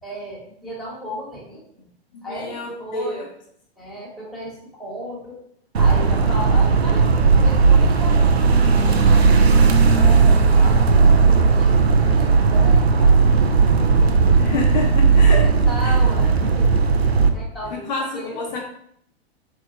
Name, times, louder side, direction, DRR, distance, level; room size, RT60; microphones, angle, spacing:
voice 1, 0.0-1.9 2.2-3.3 3.8-5.4 5.8-9.5 9.9-14.5 15.4-16.7 17.3-18.4, equal, ahead, -6 dB, 1.3 m, -35 dB
voice 2, 2.1-3.3 14.4-15.5 15.8-16.0 17.7-18.6, left 2 dB, 45° left, 0 dB, 0.7 m, -28 dB
sound 1, 5.7-17.3, right 4 dB, 75° right, 0.5 m, -15 dB
4.5 x 3.3 x 2.8 m, 0.70 s
figure-of-eight pair, 105°, 31 cm